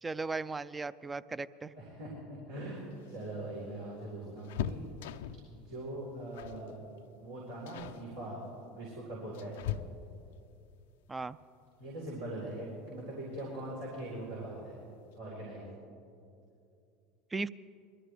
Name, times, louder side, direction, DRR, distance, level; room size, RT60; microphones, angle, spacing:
voice 1, 0.0-1.7 11.1-11.4 17.3-17.5, right 3 dB, 20° right, 16 dB, 0.4 m, -37 dB
voice 2, 1.8-4.8 5.5-6.7 7.2-8.4 8.7-9.6 11.8-14.8 15.2-15.7, right 1 dB, 90° right, -7 dB, 4.4 m, -41 dB
sound 1, 2.8-5.5 6.3-6.7 7.0-7.2 7.7-8.0 8.9-10.3 12.1-12.2 12.6-12.7 13.8-14.3 14.6-14.7 15.0-15.2, left 10 dB, 75° left, 0.4 m, -41 dB
22.0 x 13.5 x 3.5 m, 2.5 s
hypercardioid pair, 85°, 0 cm